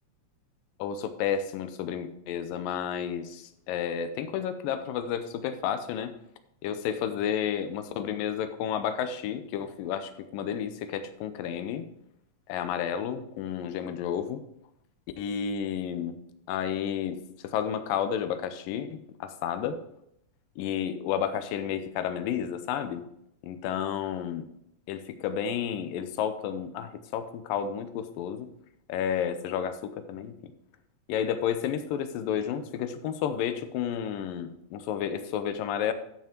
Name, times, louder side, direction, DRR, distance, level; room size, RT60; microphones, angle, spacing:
voice 1, 0.8-6.1 6.6-11.9 12.5-14.4 15.2-16.2 16.5-19.8 20.6-23.0 23.4-24.4 24.9-28.5 28.9-30.3 31.1-35.9, left 8 dB, 90° left, 10 dB, 2.5 m, -31 dB
11.5 x 5.9 x 4.5 m, 0.76 s
omnidirectional pair, 3.9 m